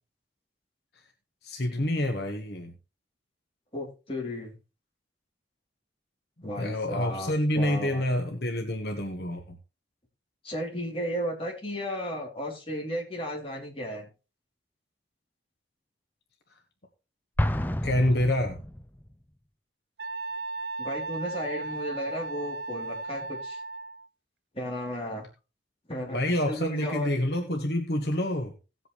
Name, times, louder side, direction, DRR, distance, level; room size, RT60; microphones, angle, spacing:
voice 1, 1.4-2.7 6.6-9.6 17.8-18.6 26.1-28.5, left 1 dB, 60° left, 3 dB, 1.4 m, -27 dB
voice 2, 3.7-4.5 6.4-8.0 10.4-14.1 20.8-23.6 24.5-25.3 25.9-27.1, equal, 30° left, -1 dB, 3.2 m, -34 dB
Explosion, 17.4-19.1, left 1 dB, 10° left, 0.5 m, -29 dB
Wind instrument woodwind instrument, 20.0-24.1, right 3 dB, 60° right, 0.5 m, -36 dB
17.0 x 8.0 x 3.1 m, 0.31 s
head